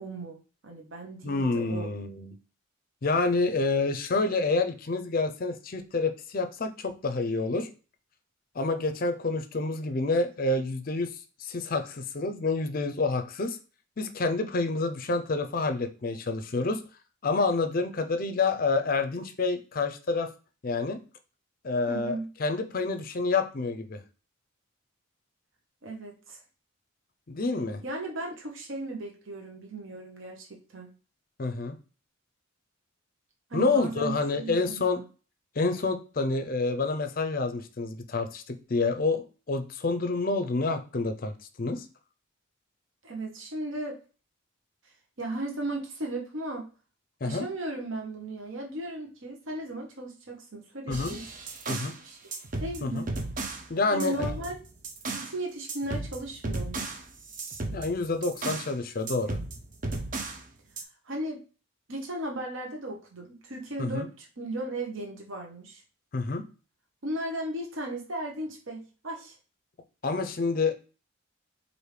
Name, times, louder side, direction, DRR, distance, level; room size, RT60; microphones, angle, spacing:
voice 1, 0.0-1.9 21.9-22.3 25.8-26.4 27.8-30.9 33.5-35.0 43.0-44.0 45.2-46.7 47.2-51.3 51.6-52.3 52.6-53.1 53.9-54.6 55.1-56.8 61.0-61.4 61.9-65.8 67.0-69.3, right 1 dB, 65° right, 1 dB, 0.9 m, -36 dB
voice 2, 1.2-2.3 3.0-7.7 8.6-11.1 11.4-13.6 14.0-16.8 17.2-20.3 20.6-21.0 21.6-22.1 22.4-24.0 27.3-27.8 31.4-31.8 33.5-35.0 35.6-41.8 47.2-47.5 50.9-51.2 51.7-51.9 52.8-53.1 53.7-54.3 57.7-59.4 63.8-64.1 66.1-66.4 70.0-70.7, left 3 dB, 45° left, 9 dB, 0.5 m, -28 dB
sound 1, 50.9-52.0 52.3-53.7 54.0-55.4 55.7-58.7 59.1-60.4 60.8-60.9, right 2 dB, 40° right, 0.5 m, -35 dB
4.7 x 2.6 x 3.3 m, 0.35 s
head